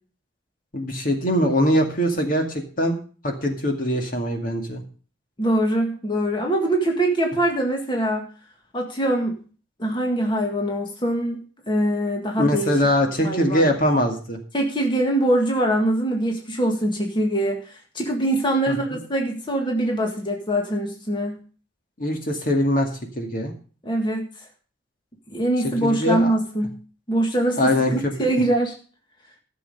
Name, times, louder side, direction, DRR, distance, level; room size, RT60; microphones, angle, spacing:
voice 1, 0.7-3.0 3.2-4.8 12.4-14.4 18.7-19.0 22.0-22.9 23.1-23.5 25.6-26.3 27.6-28.1, equal, 50° left, 3 dB, 2.2 m, -22 dB
voice 2, 5.4-8.3 8.7-9.4 9.8-11.4 11.7-12.7 13.2-13.7 14.5-21.4 23.8-24.3 25.3-26.7 27.1-28.7, right 1 dB, 25° left, 1 dB, 1.8 m, -23 dB
14.5 x 7.0 x 5.3 m, 0.39 s
head